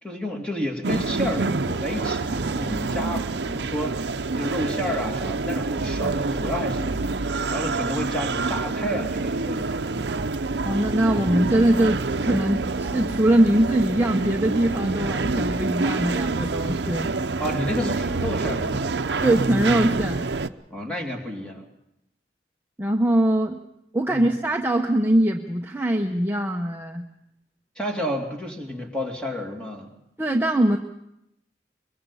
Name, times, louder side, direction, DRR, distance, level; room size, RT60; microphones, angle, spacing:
voice 1, 0.0-7.1 7.5-10.3 17.4-19.0 20.7-21.6 24.1-24.3 27.8-29.9, left 1 dB, 5° left, 1 dB, 2.5 m, -31 dB
sound 1, 0.8-20.5, right 3 dB, 75° right, 0.7 m, -27 dB
voice 2, 10.6-17.1 19.2-20.3 22.8-23.6 23.9-27.0 30.2-30.8, right 1 dB, 10° right, 2 dB, 0.8 m, -22 dB
22.5 x 22.5 x 5.6 m, 0.84 s
head